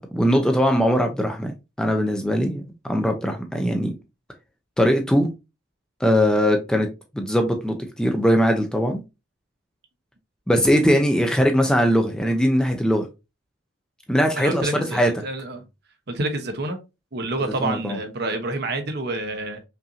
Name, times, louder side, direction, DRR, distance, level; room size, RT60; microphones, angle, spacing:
voice 1, 0.1-1.5 1.8-2.6 2.9-3.9 4.8-5.3 6.0-6.9 7.1-9.0 10.5-13.1 14.1-15.1 17.6-18.0, equal, 5° left, 0.5 m, -20 dB
voice 2, 14.3-15.6 16.1-16.8 17.1-19.7, right 2 dB, 50° right, 0.8 m, -28 dB
5.5 x 2.6 x 2.6 m
head